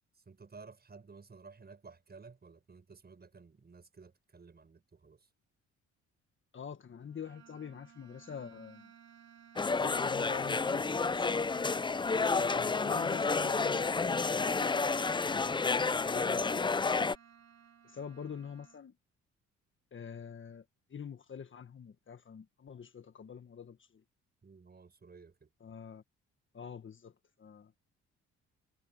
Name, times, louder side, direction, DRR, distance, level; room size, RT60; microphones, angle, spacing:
voice 1, 0.1-5.3 24.4-25.5, right 4 dB, 30° right, 7.4 m, -54 dB
voice 2, 6.5-8.9 9.8-11.4 12.4-14.8 15.2-16.7 16.9-17.1 17.8-18.9 19.9-24.0 25.6-26.0 26.5-27.7, left 7 dB, 40° left, 1.6 m, -46 dB
sound 1, 7.0-18.8, right 8 dB, 60° right, 3.3 m, -59 dB
restaurant amb busy noisy, 9.6-17.2, left 4 dB, 15° left, 0.5 m, -30 dB
cardioid pair, 90°, 30 cm